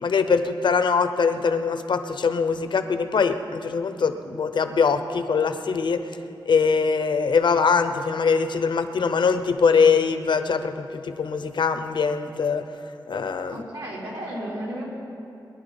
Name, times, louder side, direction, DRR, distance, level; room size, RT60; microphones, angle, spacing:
voice 1, 0.0-6.0 6.5-12.6 13.1-13.6, left 5 dB, 75° left, 9 dB, 0.8 m, -22 dB
voice 2, 13.5-14.9, right 1 dB, 70° right, -6 dB, 4.4 m, -33 dB
22.5 x 11.0 x 4.1 m, 2.7 s
wide cardioid pair, 165°, 8 cm